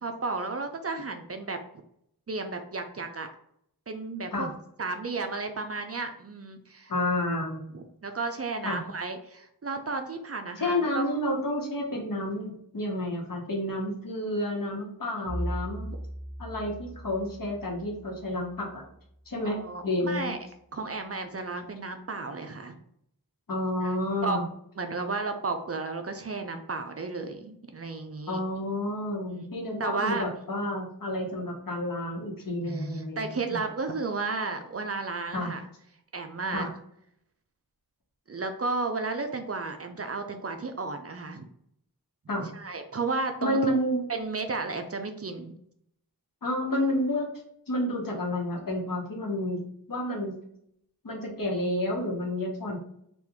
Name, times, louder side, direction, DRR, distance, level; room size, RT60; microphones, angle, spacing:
voice 1, 0.0-1.6 2.3-3.3 3.9-4.5 4.8-6.9 7.7-11.1 15.4-15.5 15.9-16.0 19.4-20.4 20.7-22.7 23.8-23.9 24.2-24.4 24.8-28.4 29.3-29.5 29.8-30.3 32.7-35.7 36.1-36.7 38.3-41.5 42.5-43.7 44.1-45.5, right 3 dB, 40° right, 6 dB, 0.5 m, -33 dB
voice 2, 6.9-7.6 8.6-8.8 10.6-15.9 16.4-18.9 19.3-20.3 23.5-24.4 28.3-33.6 35.3-35.5 36.5-36.7 42.3-42.5 43.4-44.1 46.4-47.3 47.7-49.6 49.9-50.4 51.0-52.8, left 1 dB, 60° left, -1 dB, 1.1 m, -30 dB
Bowed string instrument, 15.2-19.4, equal, 10° left, 1.1 m, -38 dB
2.9 x 2.4 x 3.5 m, 0.70 s
wide cardioid pair, 45°, 38 cm